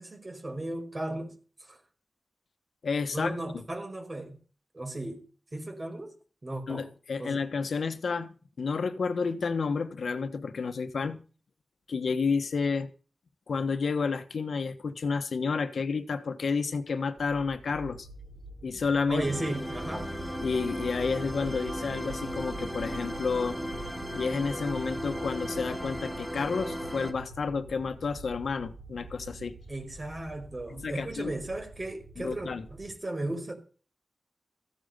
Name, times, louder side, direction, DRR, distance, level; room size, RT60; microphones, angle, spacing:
voice 1, 0.0-1.8 3.1-4.4 4.7-5.3 5.5-6.1 6.4-6.9 7.2-7.4 19.1-20.1 29.7-33.5, right 1 dB, 40° right, 4.9 m, -36 dB
voice 2, 2.8-3.3 6.7-11.2 11.9-12.9 13.5-18.1 18.6-19.2 20.4-23.6 24.1-29.5 30.8-31.3 32.2-32.6, left 5 dB, 85° left, 1.3 m, -30 dB
sound 1, 17.2-32.9, right 2 dB, 55° right, 5.3 m, -46 dB
sound 2, 19.2-27.1, equal, 5° right, 3.5 m, -36 dB
15.0 x 9.1 x 6.8 m
cardioid pair, 55°, 0 cm